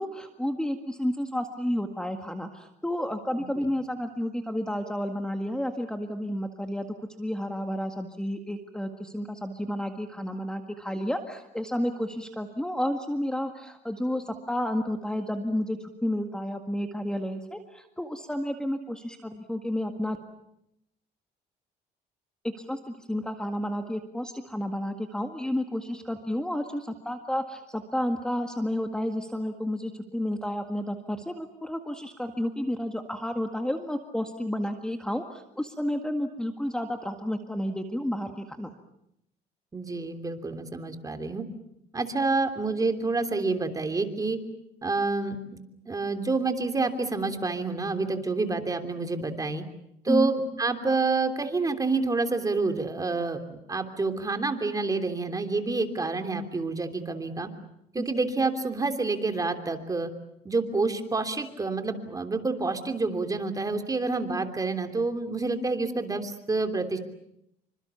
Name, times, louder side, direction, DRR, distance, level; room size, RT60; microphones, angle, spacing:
voice 1, 0.0-20.2 22.6-38.7 50.1-50.3 58.0-58.1, left 1 dB, 5° left, 5 dB, 1.9 m, -31 dB
voice 2, 39.7-41.4 41.9-44.4 44.8-49.6 50.0-57.5 57.9-60.1 60.4-67.0, right 3 dB, 20° right, 7 dB, 3.1 m, -28 dB
27.0 x 25.5 x 7.1 m, 0.79 s
cardioid pair, 110°, 17 cm